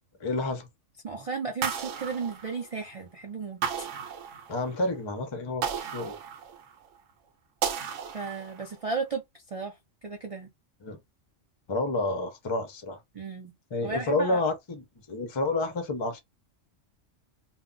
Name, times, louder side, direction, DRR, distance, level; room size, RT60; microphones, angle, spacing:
voice 1, 0.2-0.7 4.5-6.2 10.8-11.0 11.7-13.0 13.7-16.2, left 2 dB, 35° left, 0.4 m, -29 dB
voice 2, 1.0-3.9 8.1-9.2 9.5-10.5 13.1-13.5 13.8-14.4, right 4 dB, 55° right, 0.4 m, -34 dB
sound 1, 1.6-3.0 3.6-4.8 5.6-6.9 7.6-8.8, right 7 dB, 80° right, 0.9 m, -34 dB
2.2 x 2.1 x 3.7 m
omnidirectional pair, 1.3 m